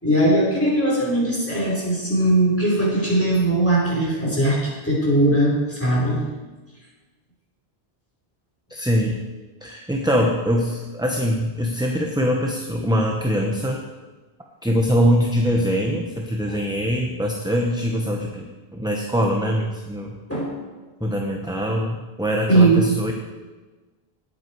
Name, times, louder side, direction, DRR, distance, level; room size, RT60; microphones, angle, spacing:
voice 1, 0.0-6.3 20.3-20.5 22.5-22.8, right 1 dB, 10° left, -5 dB, 4.6 m, -19 dB
voice 2, 8.7-9.2 9.6-13.8 14.6-18.5 18.7-20.1 21.0-23.1, equal, 5° right, 1 dB, 1.0 m, -23 dB
19.0 x 8.3 x 4.7 m, 1.3 s
omnidirectional pair, 1.1 m